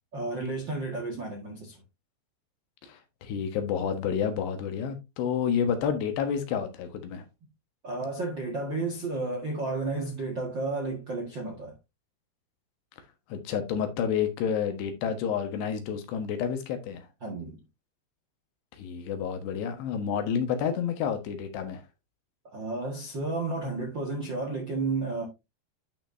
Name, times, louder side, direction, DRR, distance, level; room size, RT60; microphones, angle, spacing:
voice 1, 0.1-1.8 7.8-11.7 17.2-17.6 22.5-25.3, right 3 dB, 55° right, 1.3 m, -32 dB
voice 2, 2.8-7.3 13.3-17.1 18.7-21.8, left 7 dB, 80° left, 3.5 m, -29 dB
11.0 x 5.9 x 2.7 m
omnidirectional pair, 4.9 m